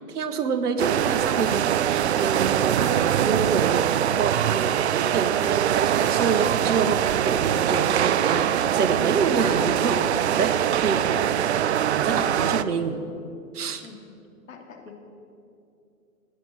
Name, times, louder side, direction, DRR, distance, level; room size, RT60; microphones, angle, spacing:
voice 1, 0.1-10.1 10.4-11.1 11.9-13.0 13.5-13.8, right 5 dB, 70° right, 6 dB, 1.8 m, -27 dB
sound 1, 0.8-12.6, right 10 dB, 45° right, 0.5 m, -23 dB
Wind instrument woodwind instrument, 1.8-9.8, right 1 dB, 5° right, 3.7 m, -41 dB
voice 2, 10.4-10.9 11.1-11.4 12.5-13.1 13.8-14.0 14.5-15.0, left 6 dB, 55° left, 2 dB, 3.0 m, -45 dB
18.0 x 8.3 x 9.0 m, 2.5 s
hypercardioid pair, 140°, 47 cm